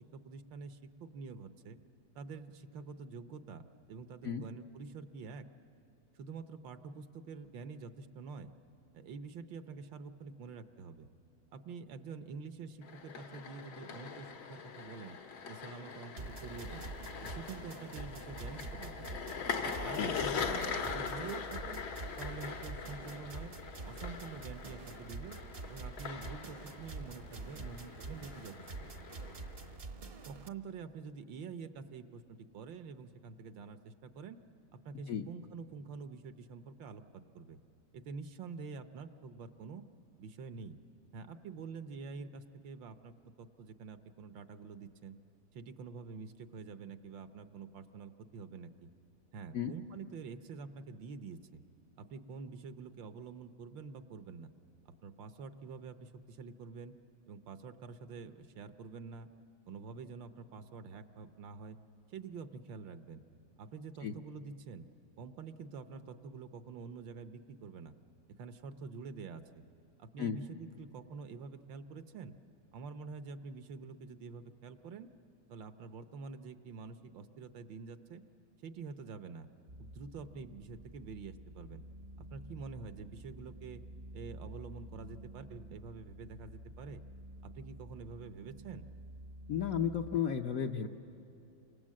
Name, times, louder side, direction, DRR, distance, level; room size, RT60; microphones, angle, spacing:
voice 1, 0.0-1.8 2.1-5.4 6.1-8.5 8.9-11.1 11.5-15.2 15.5-16.9 17.2-19.2 19.5-21.8 22.2-23.5 23.8-25.4 25.7-28.5 28.8-28.9 30.3-34.4 34.7-37.6 37.9-39.8 40.2-40.8 41.1-43.1 43.4-45.2 45.5-48.9 49.3-51.6 52.0-54.5 55.0-56.9 57.3-59.3 59.7-61.8 62.1-63.2 63.6-64.9 65.2-67.9 68.4-69.6 70.0-72.3 72.7-75.1 75.5-78.2 78.6-79.5 79.8-81.8 82.3-83.8 84.1-87.0 87.4-88.9, right 5 dB, 70° right, 9 dB, 1.5 m, -47 dB
sound 1, 12.8-29.8, left 6 dB, 80° left, 2.3 m, -42 dB
sound 2, 16.2-30.5, right 3 dB, 40° right, 0.9 m, -46 dB
sound 3, 79.7-90.2, right 1 dB, 85° right, 0.4 m, -51 dB
voice 2, 89.5-90.9, left 8 dB, 60° left, 4 dB, 1.0 m, -33 dB
30.0 x 26.0 x 7.4 m, 2.7 s
omnidirectional pair, 2.2 m